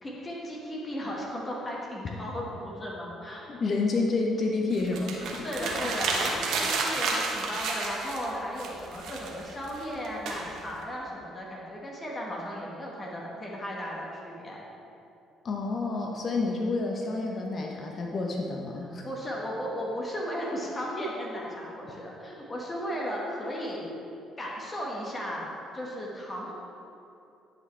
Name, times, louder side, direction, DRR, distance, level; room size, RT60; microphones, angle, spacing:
voice 1, 0.0-3.5 5.4-14.6 19.0-23.9 24.4-25.5 25.7-26.5, equal, 30° left, -3 dB, 1.5 m, -35 dB
voice 2, 3.5-5.5 15.4-19.0, left 3 dB, 45° left, 0 dB, 0.8 m, -29 dB
sound 1, 4.7-8.3 8.6-10.8, right 3 dB, 70° right, 1.0 m, -31 dB
10.5 x 5.2 x 3.3 m, 2.7 s
hypercardioid pair, 60°, 0 cm